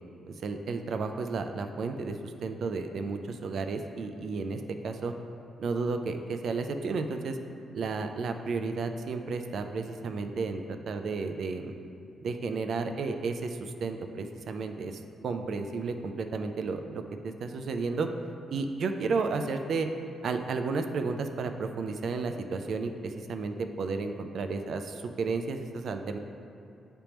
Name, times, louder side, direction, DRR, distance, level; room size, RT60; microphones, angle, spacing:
voice 1, 0.3-5.1 5.6-7.4 7.7-11.7 12.2-18.1 18.5-19.9 20.2-26.2, right 4 dB, 60° right, 6 dB, 0.4 m, -32 dB
9.6 x 3.4 x 3.0 m, 2.6 s
cardioid pair, 125°, 0 cm